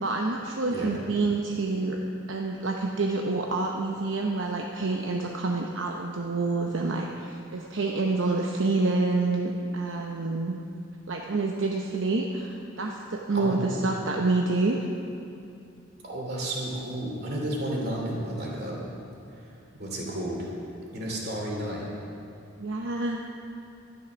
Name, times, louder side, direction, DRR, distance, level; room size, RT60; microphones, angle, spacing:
voice 1, 0.0-2.0 2.3-10.6 11.1-14.9 22.6-23.3, right 3 dB, 75° right, 1 dB, 0.8 m, -27 dB
voice 2, 13.3-13.8 16.0-18.9 19.3-20.5 20.9-21.9, right 1 dB, 50° right, -2 dB, 2.7 m, -32 dB
12.0 x 11.0 x 6.1 m, 2.6 s
head